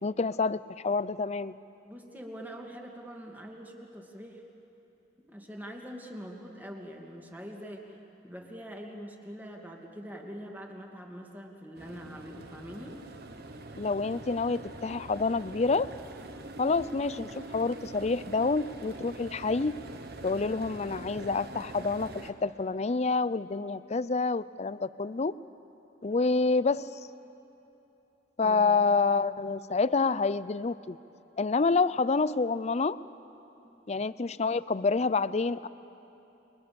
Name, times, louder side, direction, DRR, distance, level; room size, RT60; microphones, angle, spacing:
voice 1, 0.0-1.5 13.8-15.9 16.6-19.8 20.2-25.3 26.0-26.9 28.4-31.0 31.4-33.0 33.9-35.7, left 4 dB, 35° left, 16 dB, 0.5 m, -28 dB
voice 2, 1.8-4.4 5.3-8.0 8.2-13.0 28.4-28.8 33.6-33.8, equal, 10° right, 1 dB, 2.4 m, -44 dB
sound 1, 11.7-22.3, right 2 dB, 60° right, 1.3 m, -44 dB
29.0 x 22.5 x 7.0 m, 2.9 s
head